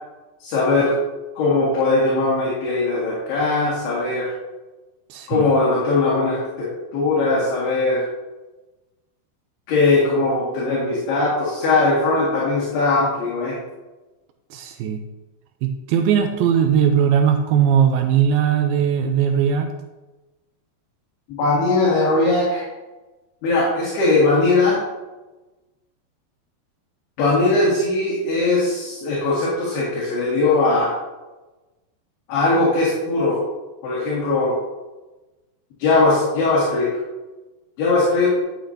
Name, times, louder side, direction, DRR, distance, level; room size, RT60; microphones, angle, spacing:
voice 1, 0.4-0.9 1.4-4.3 5.3-8.0 9.7-13.6 21.4-22.7 23.4-24.8 27.2-30.9 32.3-33.4 33.8-34.5 35.8-36.9 37.8-38.4, left 3 dB, 70° left, -7 dB, 3.9 m, -19 dB
voice 2, 5.1-5.5 14.5-15.0 15.6-19.7, right 8 dB, 90° right, 5 dB, 2.1 m, -19 dB
11.5 x 7.8 x 2.8 m, 1.1 s
omnidirectional pair, 5.0 m